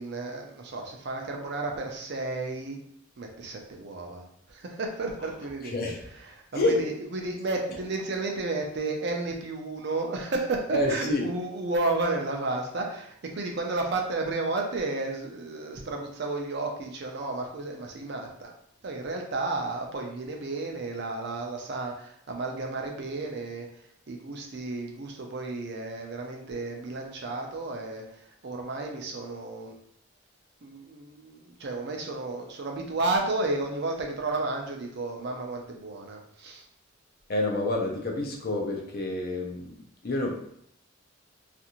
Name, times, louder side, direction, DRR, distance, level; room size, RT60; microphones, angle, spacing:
voice 1, 0.0-2.8 3.2-5.8 6.2-18.5 18.8-29.7 30.6-36.6, right 2 dB, 55° right, 2 dB, 0.5 m, -32 dB
voice 2, 5.6-6.0 6.5-6.8 10.7-11.2 37.3-39.8 40.0-40.5, left 1 dB, 50° left, 1 dB, 0.5 m, -28 dB
2.5 x 2.5 x 2.9 m, 0.68 s
head